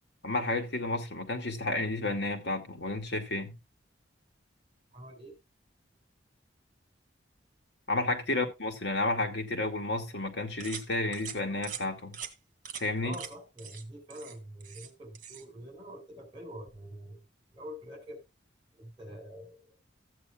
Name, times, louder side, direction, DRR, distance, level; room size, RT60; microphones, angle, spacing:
voice 1, 0.2-3.6 7.9-12.2 12.8-13.2, left 2 dB, 70° left, 2.5 m, -31 dB
voice 2, 4.9-5.3 8.3-8.5 13.0-17.2 17.5-18.2 18.8-19.7, equal, 25° right, 4.9 m, -45 dB
sound 1, 10.6-10.9 11.1-11.4 11.6-11.8 12.1-12.3 12.6-12.8 13.1-13.3 13.6-13.8 14.1-14.9 15.1-15.4, right 8 dB, 45° right, 1.8 m, -42 dB
14.5 x 9.0 x 2.4 m
head